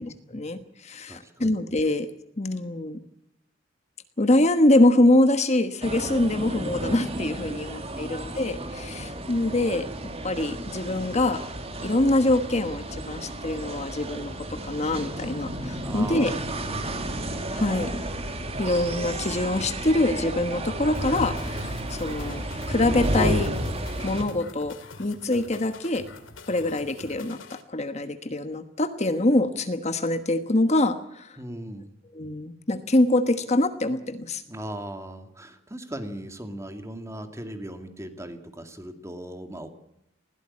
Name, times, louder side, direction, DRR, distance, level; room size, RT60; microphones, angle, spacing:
voice 1, 0.0-2.1 2.4-3.0 4.2-9.9 10.2-11.4 11.8-16.3 17.5-18.0 18.6-23.5 24.0-26.0 26.5-31.4 32.1-34.4, left 1 dB, 35° left, 9 dB, 1.3 m, -24 dB
voice 2, 1.1-1.5 7.4-7.6 7.9-8.2 15.8-17.0 18.3-18.8 31.4-31.9 34.5-39.7, right 1 dB, 15° right, 7 dB, 2.2 m, -38 dB
sound 1, 5.8-24.2, right 1 dB, 30° right, 2.4 m, -32 dB
sound 2, 20.9-27.6, left 3 dB, 90° left, 2.4 m, -45 dB
20.5 x 16.5 x 8.6 m, 0.79 s
head